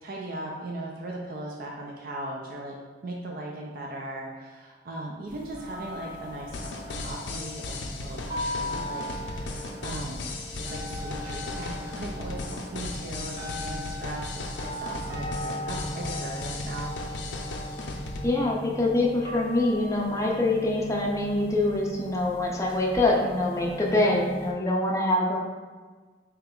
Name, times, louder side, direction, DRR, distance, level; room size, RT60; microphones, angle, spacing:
voice 1, 0.0-2.8 3.0-17.0, right 1 dB, 55° right, -2 dB, 0.4 m, -38 dB
sound 1, 5.3-24.5, left 1 dB, 30° right, 0.8 m, -39 dB
sound 2, 6.5-18.2, left 2 dB, 90° left, 0.5 m, -36 dB
voice 2, 18.2-25.4, left 2 dB, 15° left, -2 dB, 0.5 m, -25 dB
3.2 x 2.9 x 3.7 m, 1.4 s
head